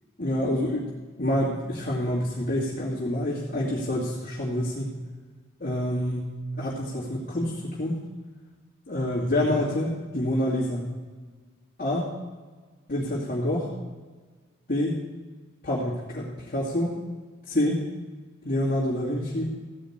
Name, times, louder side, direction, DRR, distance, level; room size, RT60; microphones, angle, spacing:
voice 1, 0.2-0.9 1.2-4.9 5.6-7.9 8.9-10.8 11.8-12.1 12.9-13.7 14.7-14.9 15.6-16.9 17.5-17.8 18.4-19.5, left 1 dB, 45° left, -9 dB, 2.4 m, -27 dB
15.5 x 5.2 x 8.7 m, 1.4 s
head